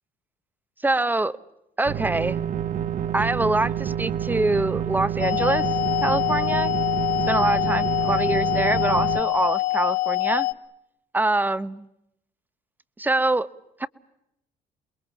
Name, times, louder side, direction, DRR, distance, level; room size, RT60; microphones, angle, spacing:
voice 1, 0.8-1.3 1.8-2.4 3.1-5.7 6.0-6.7 7.3-10.5 11.1-11.8 13.0-13.5 13.8-13.9, right 2 dB, 10° right, 1.1 m, -24 dB
sound 1, 1.9-9.2, right 9 dB, 50° right, 1.2 m, -28 dB
sound 2, 5.2-10.5, left 18 dB, 90° left, 1.2 m, -25 dB
29.0 x 22.0 x 8.3 m
cardioid pair, 110°, 17 cm